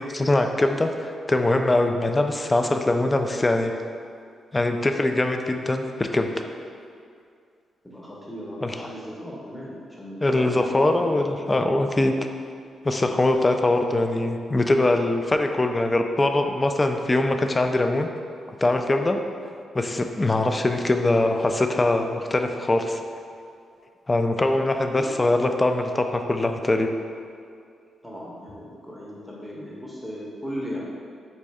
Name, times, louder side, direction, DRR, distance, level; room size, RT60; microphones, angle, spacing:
voice 1, 0.0-3.7 4.5-6.4 8.6-8.7 10.2-12.1 12.8-18.1 18.6-19.2 19.7-23.0 24.1-26.9, left 2 dB, 30° left, 5 dB, 0.3 m, -22 dB
voice 2, 7.8-11.8 24.8-25.1 28.0-30.8, equal, 5° left, -5 dB, 0.8 m, -37 dB
4.0 x 2.5 x 3.4 m, 2.3 s
supercardioid pair, 45°, 0 cm